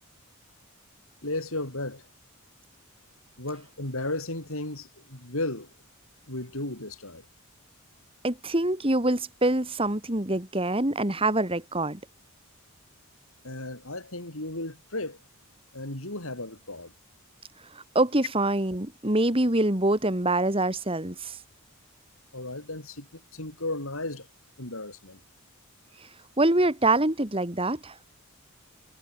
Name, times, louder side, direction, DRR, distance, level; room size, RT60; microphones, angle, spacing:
voice 1, 1.2-2.0 3.4-5.7 6.3-7.3 13.4-15.2 15.7-16.9 22.3-24.3 24.6-25.2, left 2 dB, 70° left, 6.3 m, -34 dB
voice 2, 8.2-12.0 17.7-21.4 26.4-27.9, right 2 dB, 25° right, 2.3 m, -25 dB
head